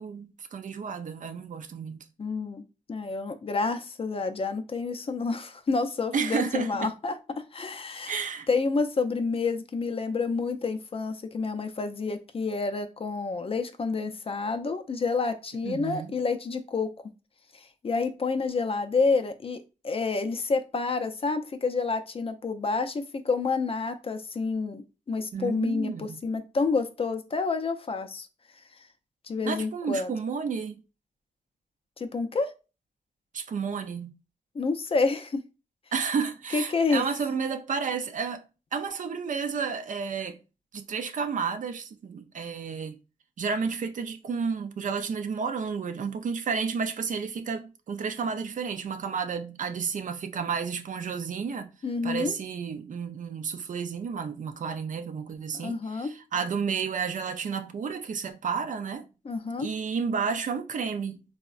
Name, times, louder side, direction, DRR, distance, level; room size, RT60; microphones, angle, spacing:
voice 1, 0.0-2.0 6.1-6.9 8.1-8.5 15.6-16.1 25.3-26.2 29.4-30.8 33.3-34.1 35.9-38.4 38.7-40.4 40.7-43.0 43.4-51.7 52.0-59.0 59.6-61.2, right 6 dB, 60° right, 0.4 m, -31 dB
voice 2, 2.2-8.1 8.5-16.9 17.5-28.3 29.2-30.1 32.0-32.5 34.5-35.4 36.5-37.0 51.8-52.3 55.5-56.1 59.2-59.7, left 4 dB, 40° left, 0.4 m, -29 dB
3.5 x 2.0 x 2.4 m
cardioid pair, 60°, 15 cm